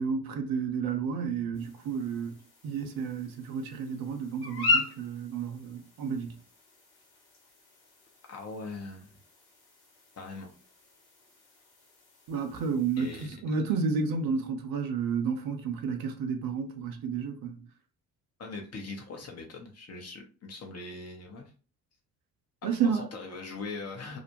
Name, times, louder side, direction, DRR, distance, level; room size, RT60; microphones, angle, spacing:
voice 1, 0.0-2.3 2.6-6.4 12.3-17.6 22.6-23.0, right 5 dB, 50° right, 0.6 m, -31 dB
sound 1, 1.5-13.3, left 3 dB, 55° left, 1.2 m, -38 dB
voice 2, 8.3-9.1 10.2-10.5 13.0-13.4 18.4-21.5 22.8-24.2, left 3 dB, 35° left, 0.8 m, -41 dB
2.4 x 2.1 x 2.9 m
hypercardioid pair, 50°, 45 cm